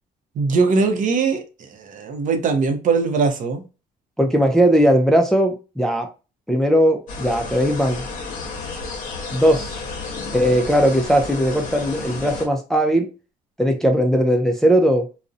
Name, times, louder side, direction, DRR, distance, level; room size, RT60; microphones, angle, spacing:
voice 1, 0.4-3.6, right 4 dB, 50° right, 0.5 m, -21 dB
voice 2, 4.2-6.1 6.5-8.0 9.3-9.8 10.3-13.1 13.6-15.1, equal, 5° left, 0.3 m, -18 dB
sound 1, 7.1-12.5, left 4 dB, 50° left, 0.7 m, -32 dB
2.5 x 2.0 x 2.5 m
cardioid pair, 110°, 17 cm